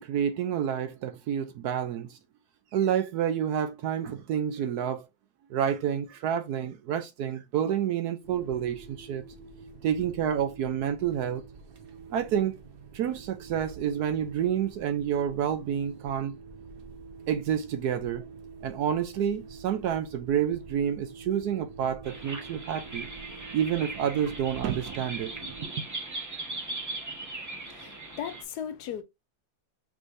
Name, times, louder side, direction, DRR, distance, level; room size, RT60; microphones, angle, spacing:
voice 1, 0.0-2.2 2.7-5.1 5.5-9.2 9.8-11.4 12.1-12.6 12.9-16.4 17.3-18.3 18.6-23.1 23.5-25.3, right 9 dB, 70° right, 1.0 m, -29 dB
sound 1, 8.2-25.7, right 4 dB, 55° right, 0.6 m, -47 dB
sound 2, 22.0-28.4, right 2 dB, 15° right, 0.6 m, -39 dB
voice 2, 27.3-29.0, left 9 dB, 75° left, 1.0 m, -38 dB
5.3 x 3.2 x 2.5 m
omnidirectional pair, 2.0 m